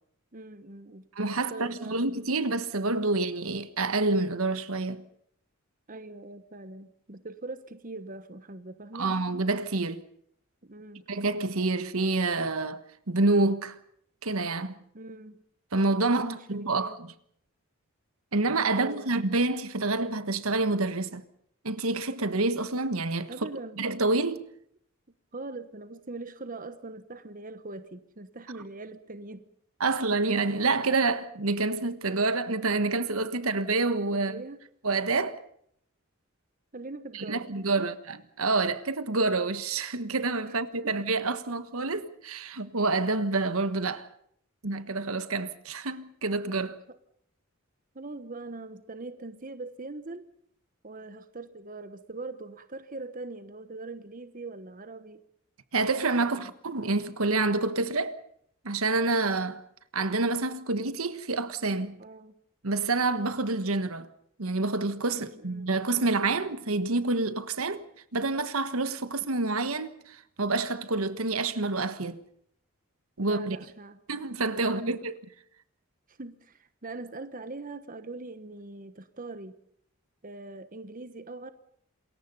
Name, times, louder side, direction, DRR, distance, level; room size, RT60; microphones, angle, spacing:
voice 1, 0.3-1.1 1.4-2.0 5.9-9.1 10.6-11.0 14.9-15.4 16.0-17.0 18.7-19.1 23.3-23.8 25.3-29.5 34.1-34.6 36.7-37.5 37.8-37.9 40.5-40.6 40.8-40.9 46.9-47.0 47.9-50.3 50.8-55.3 56.2-56.5 62.0-62.3 65.1-65.8 73.2-74.0 74.5-75.0 76.1-79.6 80.2-81.5, right 2 dB, 40° right, 1.2 m, -41 dB
voice 2, 1.1-5.0 8.9-10.0 11.1-13.8 14.2-14.7 15.7-17.1 18.3-21.2 21.6-23.3 23.8-24.4 29.8-34.4 34.8-35.4 37.1-44.1 44.6-46.8 55.7-58.2 58.6-59.6 59.9-62.0 62.6-64.1 64.4-67.8 68.1-72.2 73.2-73.6 74.1-75.1, right 3 dB, 75° right, 1.4 m, -28 dB
28.0 x 22.0 x 5.6 m
head